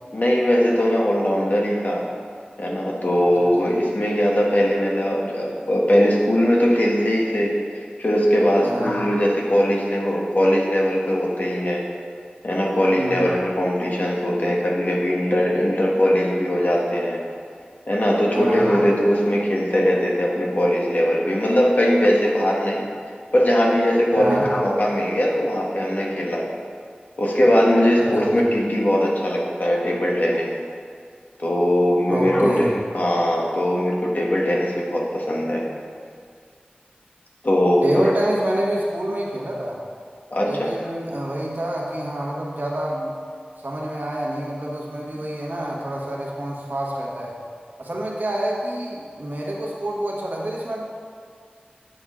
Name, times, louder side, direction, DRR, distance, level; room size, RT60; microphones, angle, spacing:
voice 1, 0.1-2.1 2.6-7.5 8.0-11.8 12.4-17.2 17.9-22.8 23.3-26.4 27.2-30.5 31.4-35.6 37.4-38.1 40.3-40.7, equal, 55° left, -2 dB, 1.2 m, -20 dB
voice 2, 8.6-9.0 13.0-13.3 18.3-18.7 24.1-24.5 28.0-28.3 32.1-32.7 37.8-39.8 40.4-43.1 43.6-47.3 47.8-50.8, right 1 dB, 65° right, -3 dB, 1.4 m, -27 dB
8.9 x 5.5 x 3.7 m, 2.1 s
wide cardioid pair, 45°, 3 cm